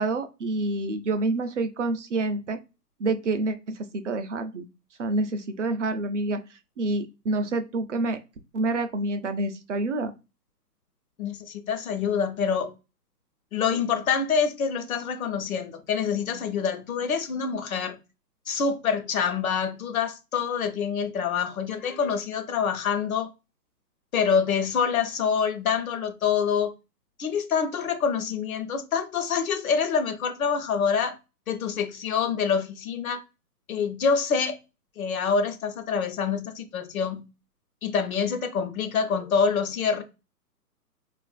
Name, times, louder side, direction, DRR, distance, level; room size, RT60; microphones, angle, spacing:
voice 1, 0.0-2.6 3.0-4.7 5.0-8.2 8.5-10.1, right 2 dB, 50° right, 0.5 m, -28 dB
voice 2, 11.2-12.7 13.5-18.0 18.5-23.3 24.1-26.7 27.2-31.2 31.5-33.2 33.7-34.6 35.0-37.2 37.8-40.0, left 6 dB, 60° left, 0.9 m, -26 dB
4.3 x 2.4 x 2.4 m
hypercardioid pair, 140°, 49 cm